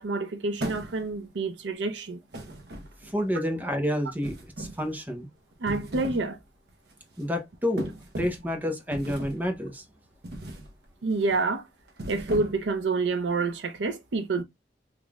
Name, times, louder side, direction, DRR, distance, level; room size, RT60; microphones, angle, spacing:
voice 1, 0.0-2.2 5.6-6.4 11.0-11.6 12.1-14.4, right 3 dB, 85° right, 0.6 m, -28 dB
sound 1, 0.6-1.3 2.3-3.2 4.2-4.9 5.5-6.3 6.7-6.9 7.8-8.5 8.9-9.5 10.2-10.7 11.1-11.4 11.9-12.8, right 1 dB, 65° right, 0.9 m, -37 dB
voice 2, 3.1-5.3 7.2-7.9 8.2-9.8, equal, 10° right, 0.7 m, -29 dB
3.7 x 3.1 x 2.3 m
head